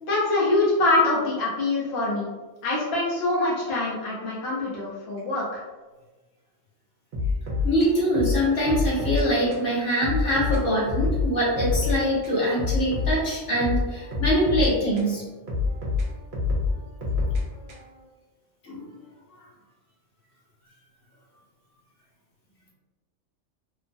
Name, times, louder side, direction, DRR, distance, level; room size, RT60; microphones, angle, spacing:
voice 1, 0.0-2.3 2.6-5.6, left 2 dB, 60° left, -6 dB, 0.9 m, -24 dB
sound 1, 7.1-9.3 9.5-9.7 10.0-12.0 12.2-15.1 15.5-18.0, left 4 dB, 60° right, 0.9 m, -27 dB
voice 2, 7.6-15.2 18.6-18.8, equal, 75° left, -6 dB, 1.3 m, -24 dB
3.0 x 2.1 x 2.5 m, 1.2 s
omnidirectional pair, 1.3 m